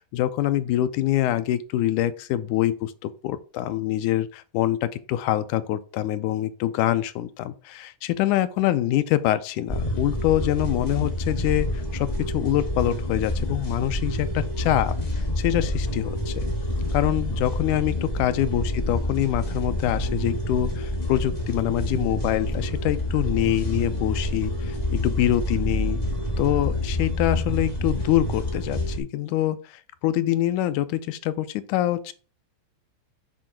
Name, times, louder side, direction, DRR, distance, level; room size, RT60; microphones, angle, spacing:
voice 1, 0.0-14.9 15.4-16.5 16.9-26.0 26.4-32.1, left 13 dB, 90° left, 2.1 m, -25 dB
sound 1, 9.7-29.0, left 1 dB, 25° left, 1.0 m, -28 dB
8.6 x 3.8 x 4.5 m
omnidirectional pair, 3.4 m